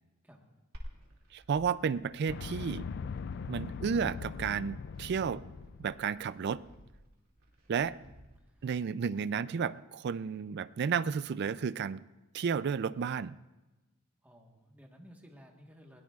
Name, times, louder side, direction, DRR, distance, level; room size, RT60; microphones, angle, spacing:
Glass, 0.7-8.7, equal, 80° right, 2.4 m, -54 dB
voice 1, 1.3-2.9 3.5-5.5 5.8-6.6 7.7-8.0 8.6-12.0 12.3-13.4, right 6 dB, 50° right, 17 dB, 0.3 m, -32 dB
sound 1, 2.3-6.2, left 5 dB, 50° left, 0.3 m, -41 dB
voice 2, 7.7-8.7 14.2-16.0, equal, 5° right, 1 dB, 1.3 m, -57 dB
21.0 x 17.5 x 2.4 m, 1.1 s
head